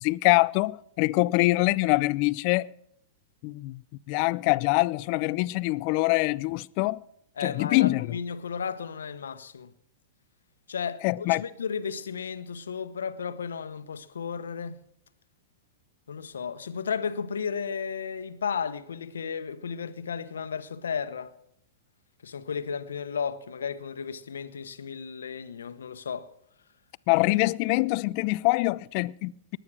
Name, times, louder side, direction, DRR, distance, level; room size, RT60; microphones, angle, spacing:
voice 1, 0.0-2.7 3.4-3.8 4.1-7.0 7.4-8.2 11.0-11.4 27.1-29.6, left 22 dB, 50° left, 0.5 m, -24 dB
voice 2, 7.4-9.7 10.7-14.8 16.1-21.3 22.2-26.3, left 6 dB, 85° left, 1.0 m, -34 dB
20.5 x 9.2 x 6.2 m
hypercardioid pair, 115°, 0 cm